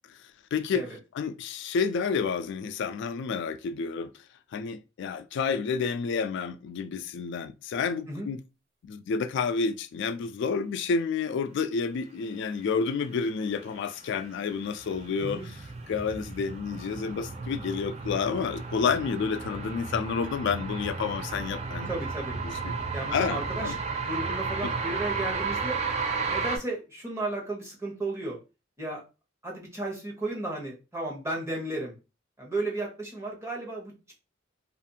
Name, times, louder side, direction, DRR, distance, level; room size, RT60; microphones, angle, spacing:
voice 1, 0.1-0.9 1.1-4.1 4.5-8.4 8.8-15.4 15.9-21.9 22.4-22.8 23.1-23.8 24.6-24.7, left 5 dB, 65° left, 0.3 m, -30 dB
sound 1, 13.8-26.6, right 4 dB, 35° right, 0.4 m, -33 dB
voice 2, 15.2-15.5 21.9-22.4 22.9-23.7 24.0-25.8 26.2-28.4 28.8-29.0 29.4-31.9 32.4-34.1, right 2 dB, 15° right, 0.9 m, -34 dB
2.5 x 2.4 x 2.7 m
head